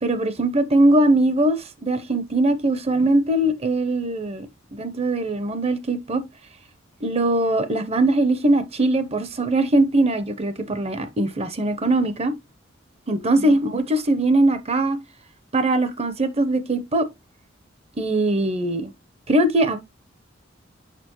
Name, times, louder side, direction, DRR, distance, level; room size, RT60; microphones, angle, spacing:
voice 1, 0.0-6.2 7.0-12.3 13.1-15.0 15.5-17.1 18.0-18.9 19.3-19.8, right 1 dB, 35° right, 0.7 m, -21 dB
6.7 x 5.1 x 2.9 m
head